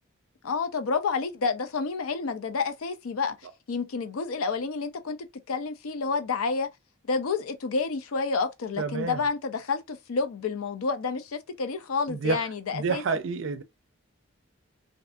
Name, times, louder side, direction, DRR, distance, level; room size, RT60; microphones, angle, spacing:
voice 1, 0.4-3.4 3.7-5.2 5.5-6.7 7.1-13.0, left 4 dB, 85° left, 0.5 m, -29 dB
voice 2, 8.8-9.2 12.1-12.5 12.7-13.6, right 4 dB, 60° right, 0.4 m, -28 dB
2.6 x 2.5 x 2.3 m
head